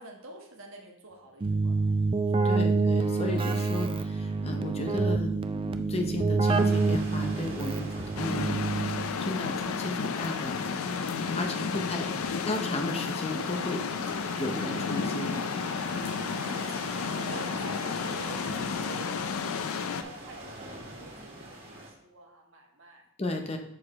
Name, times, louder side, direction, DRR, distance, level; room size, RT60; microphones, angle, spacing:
voice 1, 0.0-1.9 2.3-2.7 11.2-12.4 15.8-16.5 16.8-18.5 18.9-23.0, right 2 dB, 65° right, 1 dB, 1.3 m, -48 dB
Keyboard (musical), 1.4-9.3, right 3 dB, 25° right, 0.3 m, -27 dB
voice 2, 2.4-5.4 5.6-8.6 9.2-10.6 11.3-12.1 12.5-13.8 14.4-15.4 23.2-23.6, left 1 dB, 30° left, 4 dB, 0.7 m, -34 dB
sound 1, 6.4-21.9, right 1 dB, 45° right, 1.9 m, -43 dB
sound 2, 8.2-20.0, left 6 dB, 75° left, 0.4 m, -32 dB
6.4 x 4.8 x 4.2 m, 0.74 s
head